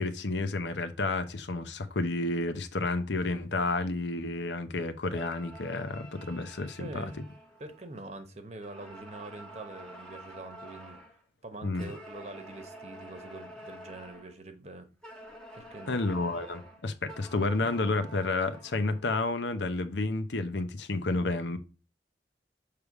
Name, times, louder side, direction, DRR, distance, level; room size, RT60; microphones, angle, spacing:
voice 1, 0.0-7.0 11.6-11.9 15.9-21.6, left 2 dB, 85° left, 0.8 m, -31 dB
sound 1, 5.1-8.2 8.6-11.2 11.7-14.4 15.0-19.2, right 1 dB, 5° left, 1.3 m, -49 dB
voice 2, 6.8-7.2 7.6-11.0 11.4-14.9 15.5-16.0, right 2 dB, 40° right, 0.9 m, -44 dB
6.8 x 3.4 x 4.8 m
head